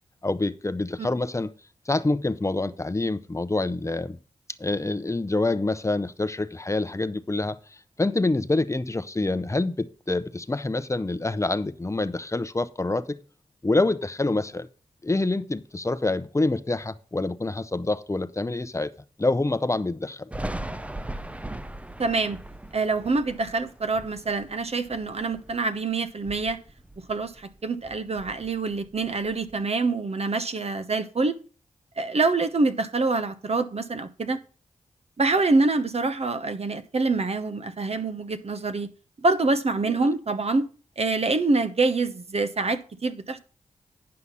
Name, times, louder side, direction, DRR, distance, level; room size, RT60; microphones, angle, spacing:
voice 1, 0.2-1.5 1.9-4.2 4.6-13.2 13.6-14.7 15.0-18.9 19.2-20.3 39.9-40.1, left 2 dB, 20° left, 0.8 m, -26 dB
Thunder, 20.3-25.8 26.1-27.6 27.8-29.6, right 1 dB, 10° right, 0.6 m, -39 dB
voice 2, 22.0-22.4 22.7-26.6 27.1-31.4 32.0-34.4 35.2-38.9 39.2-40.7 41.0-43.4, right 3 dB, 50° right, 1.0 m, -25 dB
9.8 x 5.8 x 5.6 m
cardioid pair, 50°, 14 cm